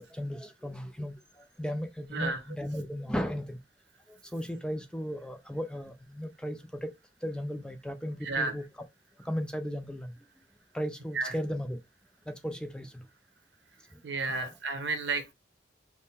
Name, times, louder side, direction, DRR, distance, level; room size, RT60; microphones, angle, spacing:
voice 1, 0.0-3.6 4.1-6.9 7.2-8.6 9.2-10.1 10.7-11.8 12.3-13.0 13.9-14.0 14.3-14.5, equal, 5° left, 0.3 m, -36 dB
voice 2, 8.2-8.6 11.1-11.3 14.0-15.3, right 3 dB, 80° right, 0.9 m, -32 dB
3.5 x 2.1 x 4.1 m
head